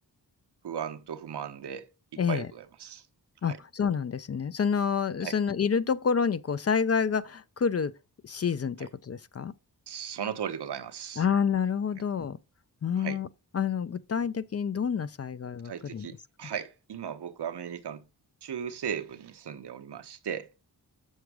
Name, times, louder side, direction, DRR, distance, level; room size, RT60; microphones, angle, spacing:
voice 1, 0.6-1.9 2.1-3.0 3.5-3.6 5.2-5.4 8.8-8.9 9.9-11.2 13.0-13.2 15.6-18.0 18.4-20.5, right 8 dB, 80° right, 0.9 m, -37 dB
voice 2, 2.2-2.5 3.4-7.9 8.2-9.5 11.2-12.4 12.8-13.3 13.5-16.1, left 6 dB, 40° left, 0.4 m, -28 dB
7.0 x 6.4 x 4.7 m
wide cardioid pair, 130°, 39 cm